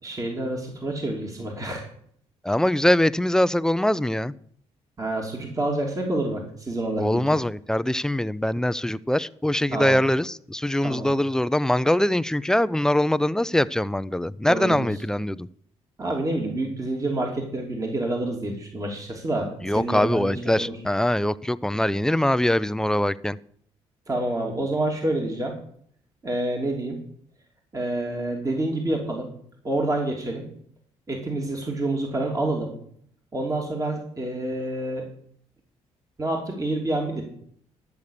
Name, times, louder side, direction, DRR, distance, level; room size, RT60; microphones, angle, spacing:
voice 1, 0.0-1.9 5.0-7.4 9.7-9.9 10.8-11.1 14.4-14.9 16.0-20.7 24.1-25.6 26.2-27.0 27.7-29.3 29.6-30.5 31.1-32.7 33.3-35.0 36.2-37.2, right 1 dB, 30° right, 3.1 m, -28 dB
voice 2, 2.4-4.3 7.0-15.5 19.6-23.4, left 1 dB, 5° left, 0.5 m, -23 dB
12.5 x 7.1 x 6.6 m
supercardioid pair, 75°, 12 cm